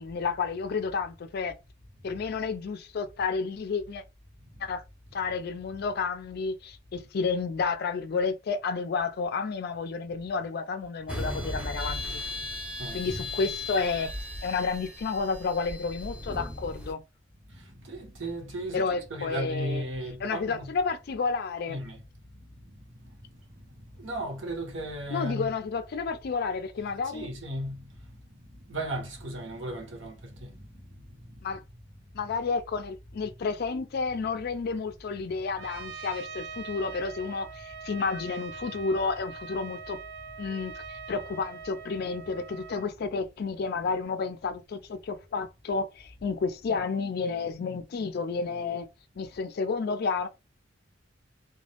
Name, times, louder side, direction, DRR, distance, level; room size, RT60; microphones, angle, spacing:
voice 1, 0.0-1.5 2.0-4.0 4.6-4.8 5.1-12.2 12.9-14.1 14.4-17.0 18.7-19.8 20.2-21.8 25.1-27.3 31.4-31.6 32.1-40.0 40.4-48.9 49.2-50.3, left 4 dB, 55° left, 0.4 m, -31 dB
sound 1, 11.1-16.9, left 1 dB, 5° right, 0.6 m, -36 dB
voice 2, 17.5-20.7 21.7-22.0 24.0-25.5 27.1-27.8 28.7-30.1 30.4-30.5, right 1 dB, 75° right, 0.8 m, -35 dB
Trumpet, 35.6-42.9, right 6 dB, 60° right, 0.3 m, -43 dB
2.2 x 2.0 x 2.8 m
head